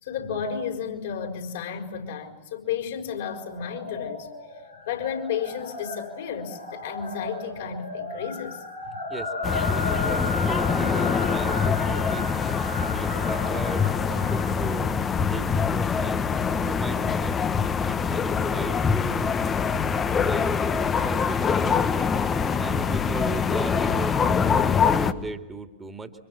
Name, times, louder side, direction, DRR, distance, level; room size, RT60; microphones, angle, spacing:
voice 1, 0.0-4.3 4.9-9.0, left 7 dB, 60° left, 5.8 m, -32 dB
sound 1, 3.4-15.8, left 2 dB, 90° left, 5.0 m, -35 dB
sound 2, 9.4-25.1, left 6 dB, 20° left, 1.5 m, -24 dB
voice 2, 9.7-12.3 12.8-14.9 15.3-16.3 16.6-19.3 20.2-20.6 21.0-22.1 22.5-26.1, right 3 dB, 15° right, 2.6 m, -37 dB
29.5 x 26.0 x 7.5 m
figure-of-eight pair, 90°, 0 cm